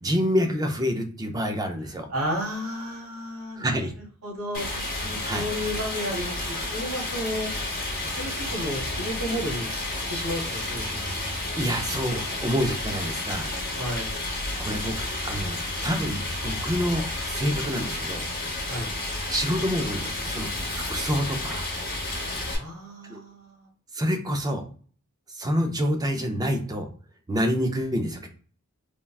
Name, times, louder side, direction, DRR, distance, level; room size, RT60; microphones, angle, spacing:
voice 1, 0.0-2.1 3.6-3.9 5.2-5.4 11.3-13.5 14.6-18.3 19.3-20.5 20.7-21.7 23.0-23.2 23.9-24.6 25.3-26.9 27.3-28.3, equal, 15° right, 5 dB, 0.4 m, -27 dB
voice 2, 1.9-3.9 4.2-7.5 8.0-9.7 10.0-11.0 13.8-14.2 18.7-18.9 22.5-23.7, equal, 85° right, -1 dB, 1.2 m, -33 dB
Stream, 4.5-22.6, left 2 dB, 45° left, 0.9 m, -31 dB
3.3 x 2.2 x 2.3 m, 0.43 s
head